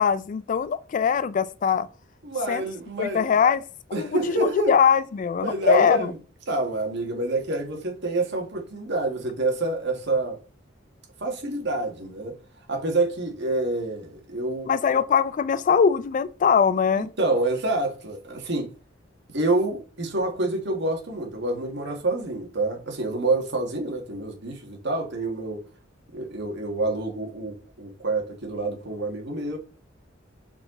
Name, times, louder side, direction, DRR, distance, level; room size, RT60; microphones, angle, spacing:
voice 1, 0.0-1.9 2.5-2.6 3.0-3.7 4.0-6.1 14.6-17.1, left 6 dB, 40° left, 0.3 m, -22 dB
voice 2, 2.2-3.3 3.9-4.7 5.4-6.1 6.5-10.4 11.2-12.4 12.7-14.7 17.0-18.7 19.3-25.6 26.1-29.6, right 2 dB, 65° right, 1.9 m, -27 dB
5.9 x 4.5 x 3.9 m
head